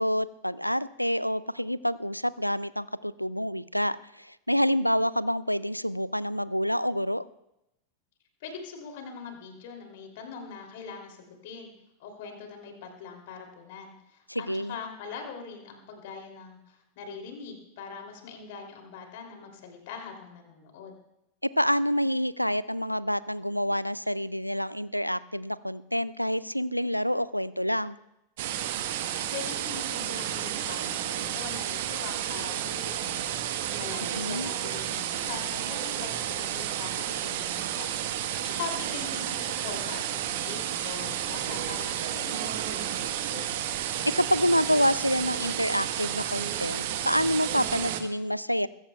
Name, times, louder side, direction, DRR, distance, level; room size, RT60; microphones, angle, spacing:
voice 1, 0.0-7.3 14.3-14.8 21.4-28.0 34.1-34.5 44.2-48.7, equal, 90° left, 19 dB, 0.4 m, -27 dB
voice 2, 8.4-11.7 12.0-20.9 29.3-33.4 33.8-40.0 40.3-43.4, left 5 dB, 50° left, 3 dB, 3.0 m, -42 dB
sound 1, 28.4-48.0, right 11 dB, 55° right, 1.2 m, -31 dB
22.0 x 15.5 x 2.3 m, 0.86 s
figure-of-eight pair, 90°, 0 cm